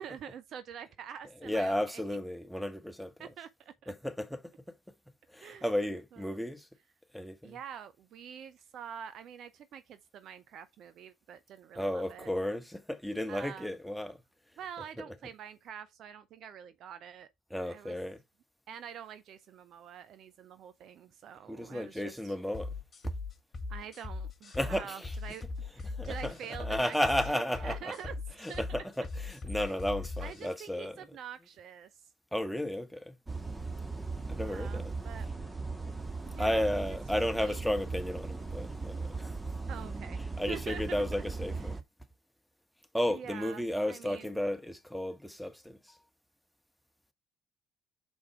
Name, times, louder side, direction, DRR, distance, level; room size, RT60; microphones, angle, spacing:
voice 1, 0.0-2.0 3.2-3.9 5.4-5.7 6.1-6.5 7.4-12.3 13.3-13.7 14.6-17.3 17.6-18.0 18.7-22.3 23.7-27.0 27.3-28.6 30.2-32.0 34.2-35.3 36.2-37.0 37.3-37.6 39.7-40.2 40.5-40.8 41.6-41.8 43.1-44.3, right 8 dB, 50° right, 0.7 m, -46 dB
voice 2, 1.4-3.3 3.9-4.4 5.3-6.7 7.1-7.6 11.7-14.2 17.5-18.2 21.5-22.7 24.5-25.1 26.0-27.9 28.4-31.0 32.3-33.2 34.3-34.9 36.4-39.3 40.4-41.8 42.9-45.9, left 1 dB, ahead, 1.5 m, -33 dB
sound 1, 22.5-30.5, left 3 dB, 35° left, 1.5 m, -40 dB
sound 2, 33.3-41.8, right 3 dB, 15° right, 1.5 m, -38 dB
6.4 x 4.7 x 4.4 m
figure-of-eight pair, 55°, 0 cm